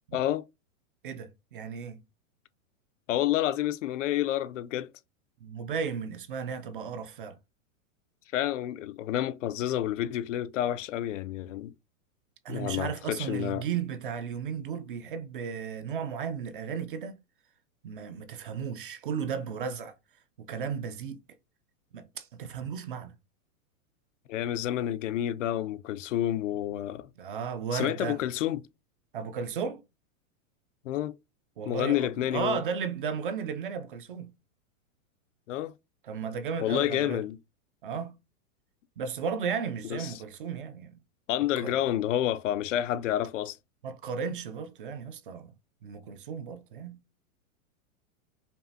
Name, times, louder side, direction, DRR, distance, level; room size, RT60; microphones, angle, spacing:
voice 1, 0.1-0.4 3.1-4.9 8.3-11.7 12.5-13.6 24.3-27.1 27.7-28.6 30.8-31.1 31.7-32.6 35.5-35.7 36.6-37.4 39.9-40.1 41.3-43.6, left 12 dB, 60° left, 0.5 m, -29 dB
voice 2, 1.0-2.0 5.4-7.4 12.4-17.2 17.8-20.0 20.4-21.2 21.9-23.1 27.2-28.2 29.1-29.8 31.6-34.3 36.0-37.2 37.8-38.2 39.0-41.0 41.6-41.7 43.8-45.5 45.8-47.0, right 6 dB, 40° right, 0.4 m, -34 dB
5.3 x 2.4 x 2.6 m
supercardioid pair, 170°, 42 cm